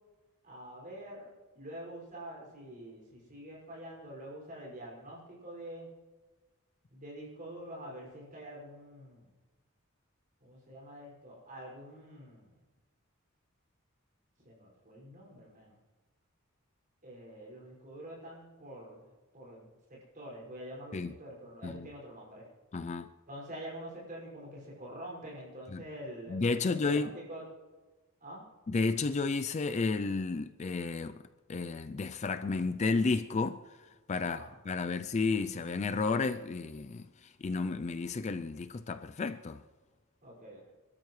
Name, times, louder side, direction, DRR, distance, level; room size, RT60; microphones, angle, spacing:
voice 1, 0.4-1.3 1.5-5.9 6.9-9.3 10.4-12.6 14.4-15.8 17.0-22.5 23.3-27.4 28.2-28.4 34.2-34.5 40.2-40.7, right 1 dB, 40° right, 5.8 m, -46 dB
voice 2, 22.7-23.1 25.7-25.8 26.3-27.1 28.7-31.2 31.5-33.6 34.1-39.6, left 4 dB, 35° left, 0.4 m, -32 dB
28.5 x 13.0 x 3.2 m
head